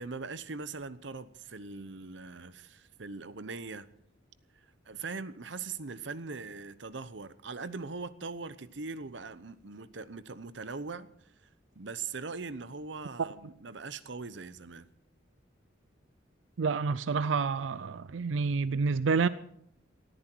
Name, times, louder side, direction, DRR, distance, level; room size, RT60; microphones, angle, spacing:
voice 1, 0.0-3.9 4.6-11.1 11.8-14.9, right 4 dB, 70° right, 0.9 m, -41 dB
voice 2, 16.6-19.3, right 5 dB, 85° right, 0.5 m, -28 dB
18.5 x 14.0 x 4.6 m
head